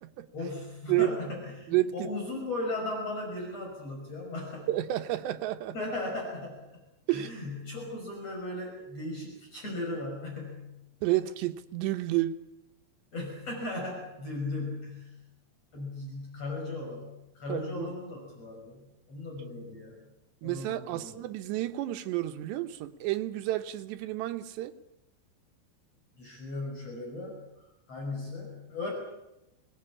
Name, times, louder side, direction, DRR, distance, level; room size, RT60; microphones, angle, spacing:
voice 1, 0.3-4.7 5.7-6.8 7.1-10.8 13.1-15.2 15.7-20.0 20.4-21.1 26.2-27.4 27.9-28.9, left 2 dB, 35° left, 6.7 m, -37 dB
voice 2, 1.7-2.1 4.7-5.7 7.1-7.3 11.0-12.4 17.5-17.9 20.4-24.8, right 15 dB, 90° right, 3.3 m, -30 dB
24.5 x 19.5 x 8.7 m
omnidirectional pair, 4.9 m